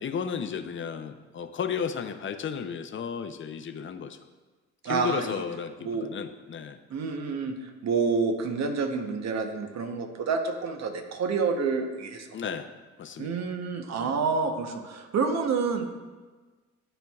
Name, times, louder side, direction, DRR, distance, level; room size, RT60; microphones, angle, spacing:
voice 1, 0.0-4.2 4.8-6.8 12.3-12.7 13.0-13.3 13.9-14.1, left 7 dB, 40° left, 8 dB, 0.6 m, -33 dB
voice 2, 4.8-5.4 5.8-6.1 6.9-12.3 13.2-15.9, right 5 dB, 60° right, 5 dB, 0.9 m, -28 dB
12.0 x 4.4 x 2.4 m, 1.3 s
cardioid pair, 90°, 30 cm